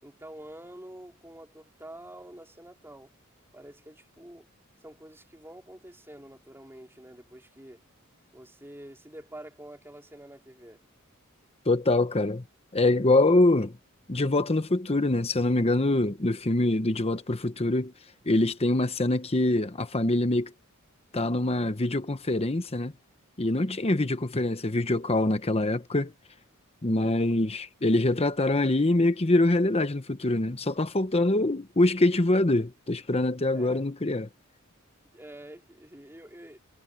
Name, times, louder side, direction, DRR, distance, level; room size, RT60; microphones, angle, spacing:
voice 1, 0.0-3.1 3.5-4.5 4.8-7.8 8.3-10.8 33.5-33.8 35.1-36.6, right 1 dB, 10° right, 4.6 m, -47 dB
voice 2, 11.7-12.4 12.7-13.8 14.1-17.9 18.3-20.5 21.1-22.9 23.4-26.1 26.8-34.3, left 2 dB, 30° left, 1.0 m, -24 dB
head